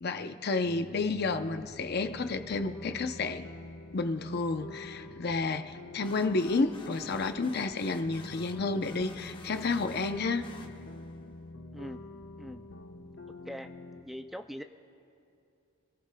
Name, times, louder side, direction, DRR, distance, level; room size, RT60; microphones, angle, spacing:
voice 1, 0.0-3.4 3.9-10.5, left 3 dB, 55° left, 8 dB, 0.6 m, -31 dB
sound 1, 0.6-14.0, left 2 dB, 80° left, 1.0 m, -47 dB
sound 2, 6.0-11.2, left 3 dB, 25° left, 0.9 m, -51 dB
voice 2, 14.0-14.6, equal, ahead, 6 dB, 0.3 m, -41 dB
28.5 x 19.0 x 2.2 m, 2.6 s
head